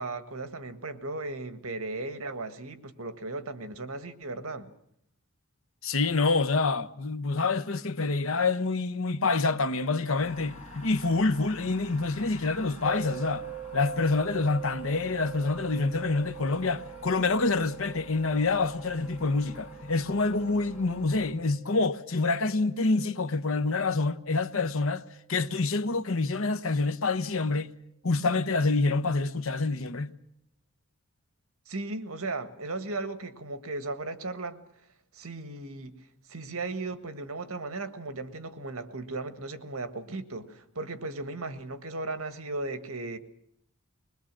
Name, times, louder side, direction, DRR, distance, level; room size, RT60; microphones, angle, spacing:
voice 1, 0.0-4.7 31.7-34.6 35.1-35.9 36.3-43.2, right 2 dB, 75° right, 1.6 m, -36 dB
voice 2, 5.8-13.4 13.7-25.0 25.3-27.7 28.0-30.1, left 3 dB, 65° left, 1.0 m, -27 dB
sound 1, 10.2-21.3, left 1 dB, 30° left, 5.9 m, -48 dB
sound 2, 12.9-25.9, right 13 dB, 15° right, 2.8 m, -45 dB
21.5 x 21.5 x 7.5 m
head